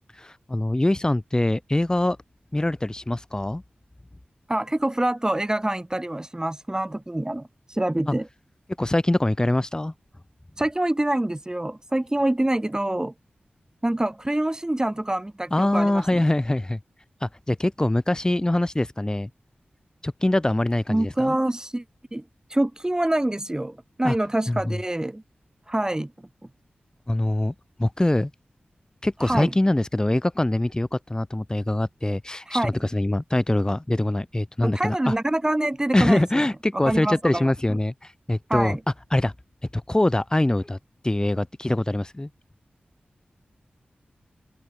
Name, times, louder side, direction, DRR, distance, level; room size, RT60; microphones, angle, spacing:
voice 1, 0.1-2.2 2.5-3.6 8.1-8.2 8.8-9.9 15.5-16.8 17.2-19.3 20.0-21.4 24.0-24.2 24.5-24.8 27.1-27.5 27.8-28.3 29.0-35.1 35.9-38.8 39.1-39.3 39.7-40.8 41.0-42.3, left 1 dB, 20° left, 4.0 m, -23 dB
voice 2, 4.5-8.3 10.6-13.1 13.8-16.2 20.9-21.8 22.1-22.2 22.5-25.2 25.7-26.1 29.2-29.5 32.5-32.7 34.6-36.4 36.9-37.8 38.5-38.8, right 1 dB, 20° right, 2.5 m, -26 dB
cardioid pair, 55°, 4 cm